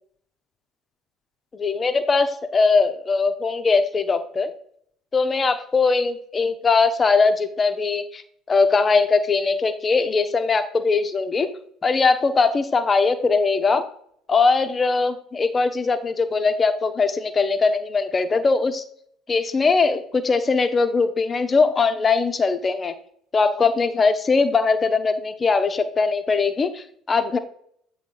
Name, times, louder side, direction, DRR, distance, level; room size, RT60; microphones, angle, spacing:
voice 1, 1.5-4.5 5.1-8.2 8.5-11.5 11.8-13.8 14.3-18.8 19.3-22.9 23.3-27.4, left 4 dB, 30° left, 9 dB, 0.9 m, -20 dB
8.2 x 3.2 x 6.3 m, 0.64 s
figure-of-eight pair, 55°, 0 cm